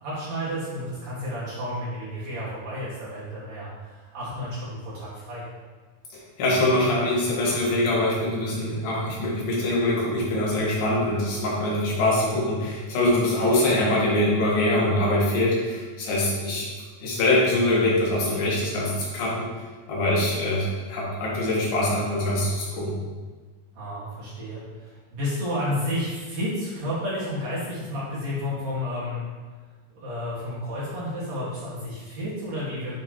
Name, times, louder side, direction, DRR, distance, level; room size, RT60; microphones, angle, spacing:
voice 1, 0.0-5.4 23.7-29.3 29.9-33.0, left 1 dB, 50° right, -10 dB, 2.8 m, -31 dB
voice 2, 6.4-16.7 17.0-19.5 19.9-23.0, left 1 dB, 80° left, -5 dB, 3.1 m, -23 dB
9.4 x 3.4 x 3.0 m, 1.4 s
omnidirectional pair, 4.2 m